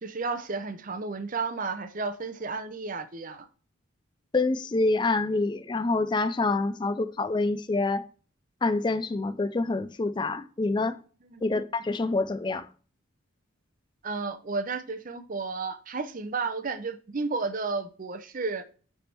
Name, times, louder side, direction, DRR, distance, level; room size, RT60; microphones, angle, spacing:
voice 1, 0.0-3.5 11.3-11.4 14.0-18.6, right 4 dB, 40° right, 0.7 m, -32 dB
voice 2, 4.3-8.0 8.6-11.0 11.4-12.7, left 3 dB, 20° left, 0.3 m, -26 dB
9.3 x 3.5 x 4.4 m
head